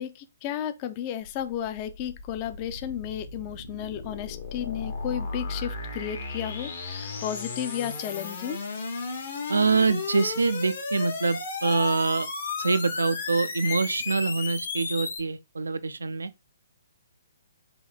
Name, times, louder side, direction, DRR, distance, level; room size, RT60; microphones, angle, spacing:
voice 1, 0.0-8.6, left 10 dB, 35° left, 0.4 m, -33 dB
sound 1, 1.3-15.2, left 4 dB, 60° left, 1.1 m, -34 dB
voice 2, 9.5-12.3 12.6-16.3, right 4 dB, 85° right, 0.3 m, -25 dB
3.5 x 2.7 x 3.6 m
hypercardioid pair, 140°, 0 cm